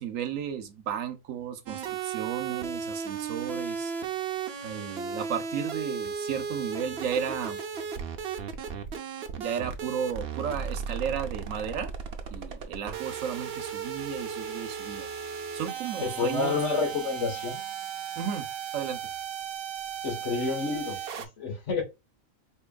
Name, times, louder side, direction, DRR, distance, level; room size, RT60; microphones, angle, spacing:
voice 1, 0.0-3.9 4.6-7.6 9.4-11.9 12.3-15.1 15.5-16.6 18.2-18.5 18.7-19.0, right 8 dB, 70° right, 1.1 m, -34 dB
sound 1, 1.7-21.3, right 6 dB, 55° right, 0.8 m, -35 dB
voice 2, 16.0-17.6 20.0-21.8, left 4 dB, 60° left, 1.6 m, -29 dB
4.5 x 3.0 x 2.2 m
omnidirectional pair, 1.4 m